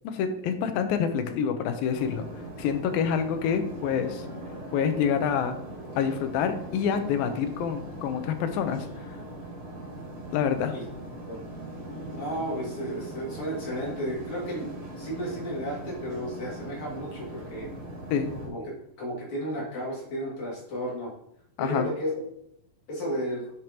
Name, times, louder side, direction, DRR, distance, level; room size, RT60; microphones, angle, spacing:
voice 1, 0.0-2.3 2.6-4.3 4.7-5.6 6.0-9.2 10.3-10.7 18.1-18.4 21.6-21.9, left 7 dB, 85° left, 8 dB, 2.6 m, -27 dB
sound 1, 1.9-18.5, right 1 dB, 80° right, 5.1 m, -40 dB
voice 2, 12.2-17.7 18.5-21.1 21.6-22.1 22.9-23.5, equal, 55° left, -5 dB, 3.6 m, -33 dB
10.5 x 6.7 x 2.9 m, 0.76 s
omnidirectional pair, 4.1 m